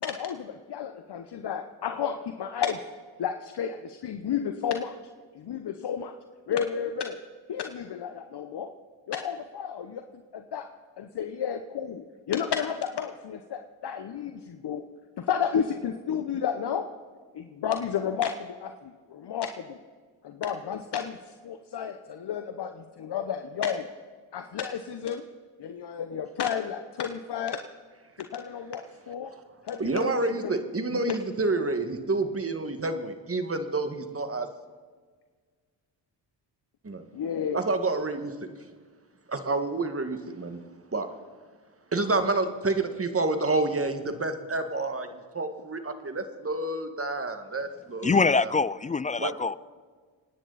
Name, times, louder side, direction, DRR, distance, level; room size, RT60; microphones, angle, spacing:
voice 1, 0.0-2.8 3.2-4.9 5.3-6.1 6.5-7.2 7.5-8.7 9.1-10.7 11.0-14.8 15.2-16.9 17.3-19.8 20.2-23.9 24.3-25.2 25.6-27.6 28.2-29.3 29.6-30.1 30.4-30.6 30.9-31.2 37.1-37.6, left 8 dB, 55° left, 1.1 m, -32 dB
voice 2, 29.8-34.5 36.8-37.0 37.5-38.3 39.3-40.6 40.9-41.1 41.9-48.5 49.2-49.3, right 3 dB, 25° right, 1.9 m, -29 dB
voice 3, 48.0-49.6, left 4 dB, 20° left, 0.3 m, -24 dB
26.0 x 9.9 x 4.2 m
supercardioid pair, 55°, 49 cm